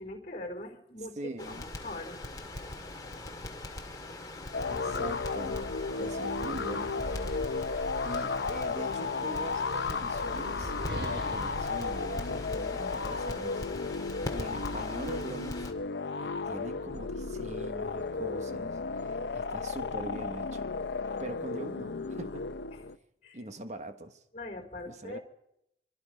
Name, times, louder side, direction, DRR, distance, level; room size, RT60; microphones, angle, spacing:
voice 1, 0.0-2.2 4.8-5.1 23.2-23.4 24.3-25.2, left 1 dB, 40° left, 4.5 m, -42 dB
voice 2, 1.2-1.7 4.7-5.6 5.9-7.1 7.5-13.6 14.3-15.7 16.2-20.7 21.2-22.5 23.3-24.2 24.8-25.2, right 1 dB, 40° right, 1.2 m, -43 dB
Crackle, 1.4-15.7, left 1 dB, 20° left, 2.2 m, -42 dB
sound 1, 4.5-23.0, left 4 dB, 80° left, 0.7 m, -34 dB
sound 2, 4.5-4.6 5.0-8.7 9.6-13.2, right 1 dB, 60° right, 1.6 m, -43 dB
25.5 x 23.5 x 5.1 m
head